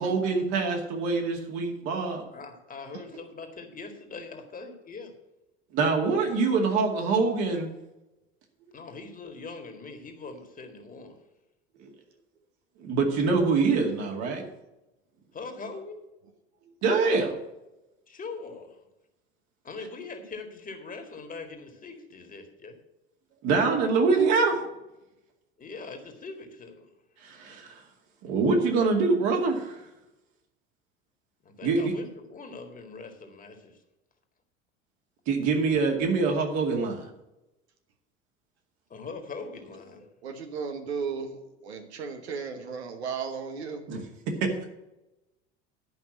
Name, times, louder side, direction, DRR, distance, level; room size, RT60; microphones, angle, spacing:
voice 1, 0.0-2.3 5.7-7.7 12.8-14.4 16.8-17.4 23.4-24.6 27.2-27.8 28.2-29.8 31.6-31.9 35.3-37.1 43.9-44.0 44.4-44.5, right 4 dB, 50° right, 2 dB, 2.4 m, -25 dB
voice 2, 2.3-5.1 8.7-11.2 15.3-16.0 18.1-18.8 19.6-22.8 25.6-26.9 31.4-33.8 38.9-40.1, left 4 dB, 25° left, 4 dB, 2.0 m, -41 dB
voice 3, 40.2-43.8, right 5 dB, 70° right, 5 dB, 1.3 m, -35 dB
11.0 x 5.6 x 7.5 m, 0.96 s
figure-of-eight pair, 70°, 33 cm